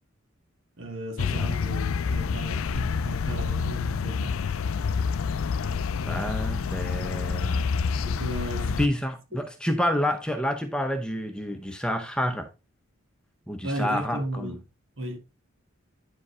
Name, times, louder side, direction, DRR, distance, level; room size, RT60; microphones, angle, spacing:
voice 1, 0.8-4.4 7.5-7.7 7.9-8.7 13.6-14.6 15.0-15.2, right 1 dB, 65° right, 1.5 m, -35 dB
sound 1, 1.2-8.9, left 5 dB, 80° left, 0.4 m, -28 dB
voice 2, 6.0-7.6 8.8-12.5 13.5-14.6, equal, 5° left, 0.7 m, -29 dB
9.7 x 5.1 x 3.1 m
head